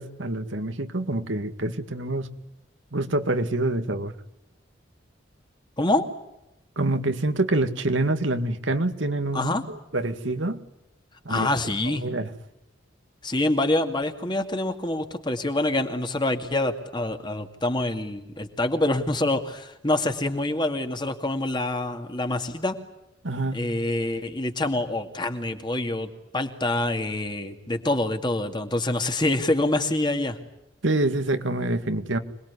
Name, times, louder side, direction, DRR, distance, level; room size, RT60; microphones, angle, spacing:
voice 1, 0.0-2.3 2.9-4.1 6.8-9.5 9.9-10.6 11.3-11.5 12.0-12.3 23.2-23.6 30.8-32.2, right 2 dB, 85° right, 8 dB, 2.0 m, -26 dB
voice 2, 5.8-6.1 9.3-9.6 11.3-12.0 13.2-22.8 23.5-30.4, left 2 dB, 25° left, 6 dB, 2.3 m, -26 dB
26.5 x 21.0 x 9.7 m, 0.89 s
head